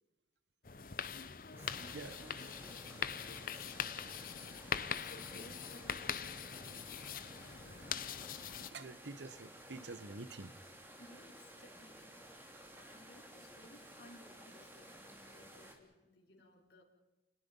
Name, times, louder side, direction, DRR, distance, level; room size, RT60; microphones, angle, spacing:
sound 1, 0.6-8.7, left 7 dB, 50° left, 0.8 m, -42 dB
voice 1, 0.9-6.9 11.0-16.8, left 1 dB, 80° left, 0 dB, 5.0 m, -60 dB
sound 2, 1.6-15.8, right 1 dB, 10° right, 2.8 m, -55 dB
voice 2, 1.9-2.3 8.7-10.6, right 3 dB, 85° right, 14 dB, 1.1 m, -47 dB
29.5 x 20.5 x 5.5 m, 1.1 s
head